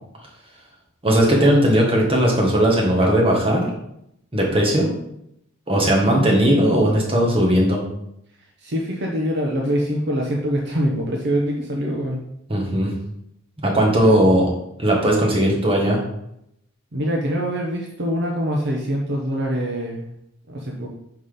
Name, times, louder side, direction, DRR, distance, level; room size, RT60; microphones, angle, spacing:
voice 1, 1.0-3.7 4.3-4.9 5.7-7.8 12.5-12.9 13.6-14.5 14.8-16.0, right 1 dB, 25° right, -2 dB, 1.6 m, -17 dB
voice 2, 8.6-12.2 14.0-14.3 16.9-20.1 20.5-20.9, equal, 55° right, -1 dB, 0.9 m, -24 dB
5.8 x 4.2 x 5.1 m, 0.77 s
head